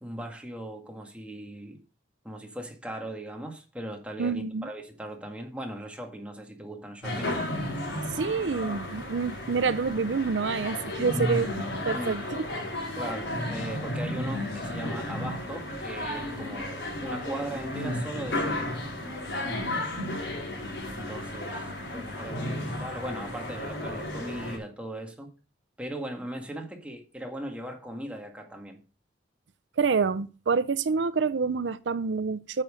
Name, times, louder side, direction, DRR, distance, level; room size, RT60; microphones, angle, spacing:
voice 1, 0.0-1.8 2.2-7.4 11.9-12.2 12.9-18.8 20.9-25.3 25.8-28.8, right 1 dB, 5° right, 1.9 m, -39 dB
voice 2, 4.2-4.7 8.1-11.5 11.9-12.5 29.8-32.6, right 5 dB, 80° right, 0.5 m, -27 dB
sound 1, 7.0-24.6, left 1 dB, 90° left, 5.0 m, -33 dB
9.2 x 7.1 x 5.1 m
head